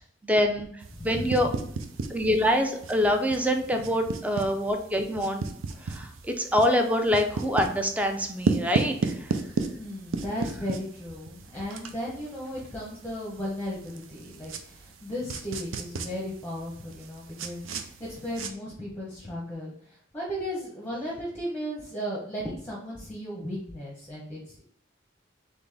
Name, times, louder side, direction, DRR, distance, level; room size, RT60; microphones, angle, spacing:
voice 1, 0.2-1.5 2.1-5.4 5.8-9.3, equal, 5° right, 4 dB, 0.5 m, -25 dB
sound 1, 0.8-18.5, right 3 dB, 90° right, 0.5 m, -35 dB
voice 2, 1.0-1.4 5.8-5.9 9.4-19.7 20.1-24.6, equal, 10° left, -5 dB, 0.8 m, -35 dB
4.1 x 3.3 x 3.4 m, 0.64 s
head